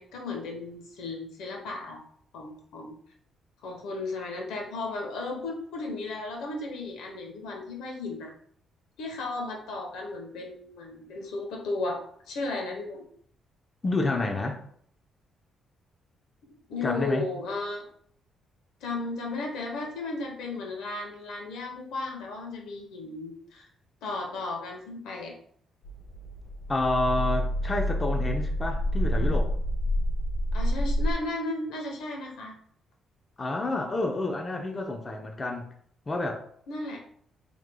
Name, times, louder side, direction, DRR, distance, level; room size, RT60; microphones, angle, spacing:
voice 1, 0.0-2.0 2.3-3.0 3.6-8.3 9.0-13.0 16.7-17.8 18.8-23.7 24.0-25.3 30.5-32.5 36.7-37.0, left 3 dB, 85° left, 2 dB, 0.9 m, -35 dB
voice 2, 13.8-14.6 16.8-17.2 26.7-29.5 33.4-35.7 36.1-36.4, left 2 dB, 30° left, 3 dB, 0.6 m, -29 dB
sound 1, 25.8-31.1, equal, 65° left, 1.7 m, -28 dB
4.7 x 3.6 x 2.2 m, 0.62 s
cardioid pair, 90°, 0 cm